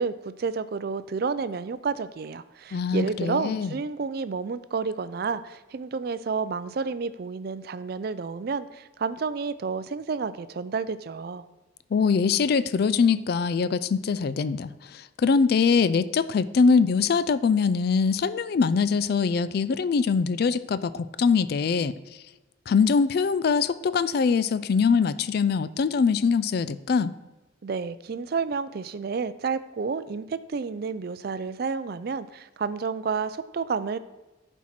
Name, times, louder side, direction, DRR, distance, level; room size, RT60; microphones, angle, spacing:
voice 1, 0.0-11.4 27.6-34.0, right 5 dB, 50° right, 14 dB, 0.4 m, -30 dB
voice 2, 2.7-3.8 11.9-21.9 22.7-27.1, left 5 dB, 50° left, 16 dB, 0.3 m, -23 dB
11.0 x 4.6 x 4.3 m, 1.1 s
head